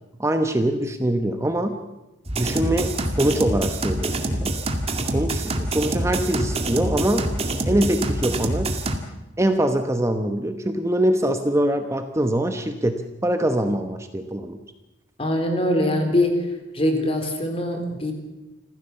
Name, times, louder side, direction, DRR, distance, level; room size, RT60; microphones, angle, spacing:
voice 1, 0.2-1.8 2.4-4.5 5.0-7.3 7.7-8.7 9.4-14.6, right 1 dB, 15° right, 7 dB, 1.0 m, -23 dB
sound 1, 2.3-9.0, right 1 dB, 30° right, 2.2 m, -26 dB
voice 2, 15.2-16.3 16.7-18.1, left 1 dB, 30° left, 6 dB, 3.7 m, -22 dB
27.5 x 15.5 x 7.1 m, 1.1 s
head